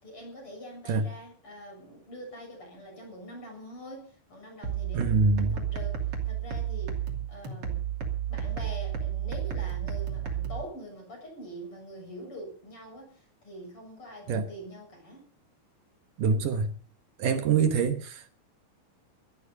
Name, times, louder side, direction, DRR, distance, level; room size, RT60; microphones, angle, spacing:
voice 1, 0.0-7.0 7.3-7.8 8.3-15.3, equal, 30° left, 7.7 m, -44 dB
sound 1, 4.6-10.6, right 9 dB, 40° right, 3.2 m, -32 dB
voice 2, 4.9-5.6 14.3-14.5 16.2-16.7 17.2-18.3, right 5 dB, 65° right, 2.4 m, -25 dB
17.0 x 12.5 x 5.4 m
omnidirectional pair, 4.7 m